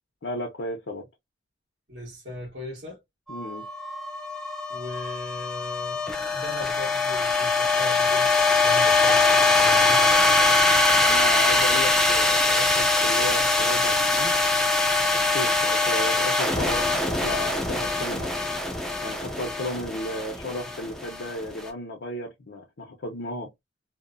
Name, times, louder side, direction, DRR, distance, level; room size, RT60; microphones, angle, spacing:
voice 1, 0.2-1.1 3.3-3.7 11.0-14.3 15.1-18.3 19.0-23.5, left 1 dB, 75° left, 0.7 m, -34 dB
voice 2, 1.9-3.0 4.7-8.3 8.6-10.2, left 1 dB, 65° right, 1.2 m, -38 dB
sound 1, 3.3-21.6, left 3 dB, 5° left, 0.4 m, -22 dB
2.8 x 2.1 x 2.5 m
head